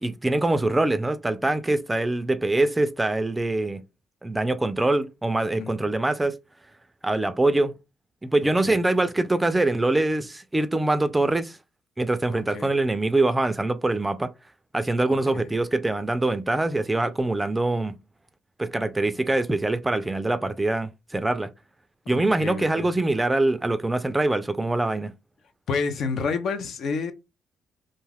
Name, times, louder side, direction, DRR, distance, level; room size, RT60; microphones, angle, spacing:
voice 1, 0.0-3.8 4.2-6.4 7.0-7.7 8.2-11.6 12.0-14.3 14.7-17.9 18.6-21.5 22.1-25.1, right 2 dB, 15° right, 0.4 m, -24 dB
voice 2, 12.3-12.7 15.1-15.5 22.1-22.9 25.7-27.1, left 5 dB, 65° left, 0.5 m, -30 dB
2.5 x 2.3 x 3.3 m
cardioid pair, 90°, 0 cm